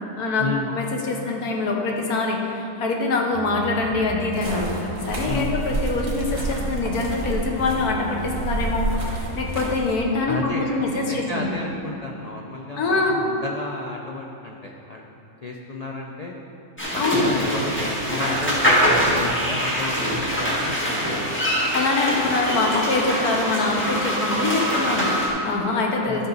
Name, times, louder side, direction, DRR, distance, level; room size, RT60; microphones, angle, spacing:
voice 1, 0.2-4.7 5.1-11.5 12.8-13.2 17.0-17.3 21.7-26.3, left 3 dB, 85° left, 1 dB, 1.5 m, -24 dB
sound 1, 3.3-9.8, right 2 dB, 15° right, 1.6 m, -35 dB
sound 2, 4.3-10.0, right 3 dB, 65° right, 1.9 m, -30 dB
voice 2, 10.3-15.1 15.4-16.4 16.9-21.3 26.1-26.2, left 2 dB, 65° left, 0 dB, 0.4 m, -32 dB
sound 3, 16.8-25.3, equal, 10° left, 1.6 m, -23 dB
12.0 x 6.0 x 4.0 m, 2.8 s
omnidirectional pair, 1.6 m